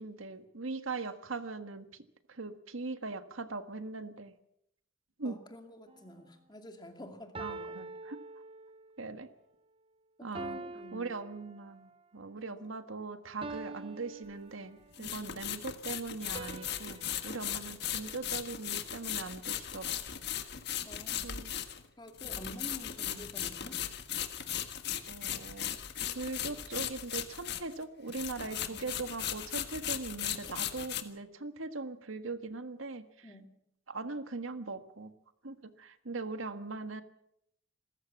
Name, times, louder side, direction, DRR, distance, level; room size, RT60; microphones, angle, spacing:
voice 1, 0.0-2.0 2.3-4.3 5.2-5.4 7.4-8.2 9.0-9.3 10.2-10.6 10.9-20.0 21.2-21.5 22.4-22.7 25.1-25.7 26.1-33.3 33.9-35.1 35.4-37.0, right 3 dB, 85° right, 10 dB, 1.6 m, -40 dB
voice 2, 5.2-7.9 10.2-11.1 12.4-12.7 15.0-15.5 20.8-21.4 22.0-23.8 28.4-29.1 33.2-33.5, left 1 dB, 20° left, 5 dB, 2.5 m, -49 dB
sound 1, 5.9-6.2 7.3-9.0 10.3-12.0 13.4-15.0 16.3-18.8, right 3 dB, 25° right, 0.9 m, -46 dB
sound 2, 13.5-13.6 14.9-27.8 28.1-31.0, left 10 dB, 55° left, 1.6 m, -37 dB
27.0 x 14.5 x 7.3 m, 0.77 s
head